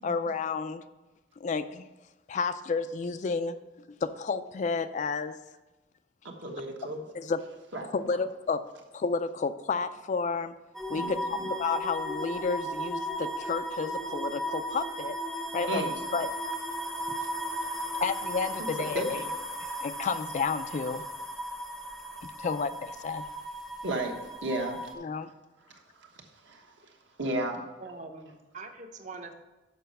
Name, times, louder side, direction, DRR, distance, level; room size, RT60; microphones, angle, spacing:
voice 1, 0.0-0.8 1.4-1.9 2.3-3.6 4.0-5.4 7.1-7.4 7.9-8.6 8.9-10.5 10.9-11.2 11.6-15.2 15.5-15.8 16.1-16.3 18.0-19.2 19.6-21.0 22.4-23.2 25.0-25.3, left 4 dB, 35° left, 11 dB, 0.3 m, -31 dB
voice 2, 6.4-7.0 7.7-8.2 10.9-11.5 15.7-15.9 17.2-17.3 18.9-19.3 23.8-24.1 24.4-24.8 25.7-26.1 26.4-26.7 27.2-27.6, right 1 dB, 65° right, 2 dB, 1.3 m, -33 dB
sound 1, 10.7-24.9, equal, ahead, 0.7 m, -35 dB
voice 3, 27.8-29.3, right 3 dB, 40° right, 5 dB, 0.8 m, -43 dB
6.8 x 5.5 x 6.5 m, 1.1 s
head